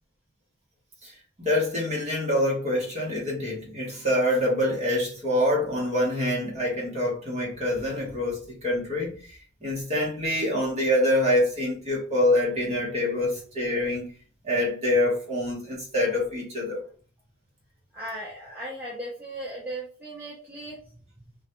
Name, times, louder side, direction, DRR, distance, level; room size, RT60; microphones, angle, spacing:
voice 1, 1.4-9.3 9.6-14.1 14.4-16.8, left 1 dB, 30° right, 0.9 m, -25 dB
voice 2, 17.9-20.8, right 1 dB, 10° right, 0.5 m, -37 dB
2.3 x 2.1 x 2.8 m
head